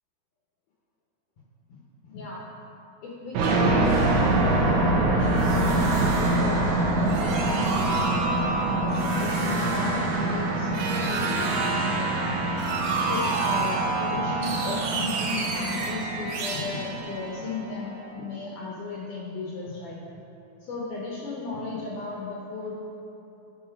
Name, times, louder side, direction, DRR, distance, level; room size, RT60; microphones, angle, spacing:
voice 1, 1.7-2.4 3.0-12.3 13.0-20.0 20.6-22.7, left 3 dB, 70° left, -4 dB, 2.0 m, -35 dB
sound 1, 3.3-18.0, right 2 dB, 90° right, 3.1 m, -25 dB
11.5 x 4.2 x 5.8 m, 2.9 s
omnidirectional pair, 4.6 m